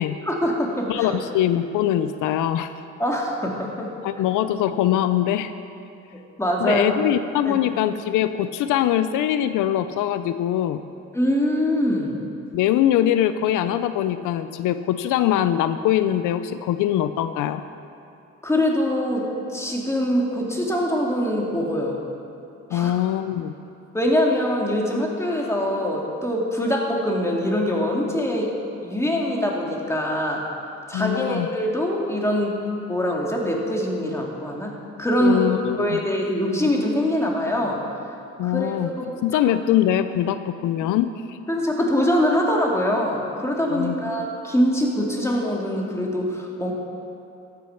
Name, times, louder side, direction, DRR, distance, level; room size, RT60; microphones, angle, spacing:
voice 1, 0.3-1.2 3.0-3.9 6.1-7.0 7.4-7.6 11.1-12.1 18.4-22.0 22.7-22.9 23.9-28.5 28.8-30.4 30.9-32.6 32.9-34.7 35.0-35.5 35.8-37.8 38.4-39.2 41.5-46.7, equal, 10° left, -1 dB, 2.4 m, -23 dB
voice 2, 0.9-2.7 4.0-5.5 6.6-10.9 12.5-17.6 22.7-23.5 30.9-31.5 35.2-36.0 38.4-38.9 39.2-41.4 43.7-44.0, left 11 dB, 90° left, 11 dB, 0.5 m, -22 dB
14.0 x 8.7 x 5.8 m, 2.8 s
cardioid pair, 90°, 30 cm